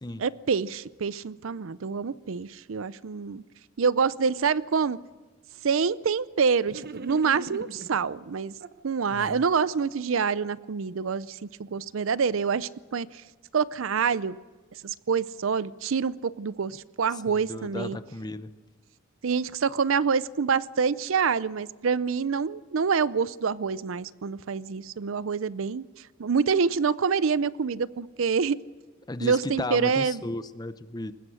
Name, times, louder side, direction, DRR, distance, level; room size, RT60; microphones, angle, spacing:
voice 1, 0.2-3.4 3.8-5.0 5.6-8.5 8.8-13.1 13.5-14.4 14.8-18.0 19.2-25.8 26.2-28.6 29.2-30.2, right 5 dB, 70° right, 18 dB, 0.5 m, -26 dB
sound 1, 6.6-8.0 8.6-9.5, right 3 dB, 50° right, 0.9 m, -40 dB
voice 2, 9.1-9.4 17.3-18.5 29.1-31.1, left 2 dB, 20° left, 12 dB, 0.8 m, -34 dB
21.5 x 20.5 x 6.3 m, 1.4 s
head